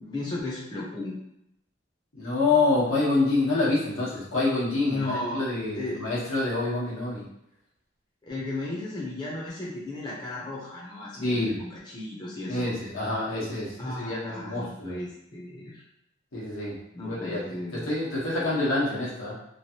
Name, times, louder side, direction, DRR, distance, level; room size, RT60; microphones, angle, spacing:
voice 1, 0.0-1.2 4.8-5.4 5.7-6.0 8.2-12.7 13.8-15.8 16.9-17.9, left 2 dB, 20° left, -5 dB, 0.6 m, -35 dB
voice 2, 2.1-7.3 11.2-11.6 12.5-15.0 16.3-19.3, left 2 dB, 90° left, -6 dB, 1.2 m, -27 dB
3.0 x 2.5 x 2.8 m, 0.80 s
head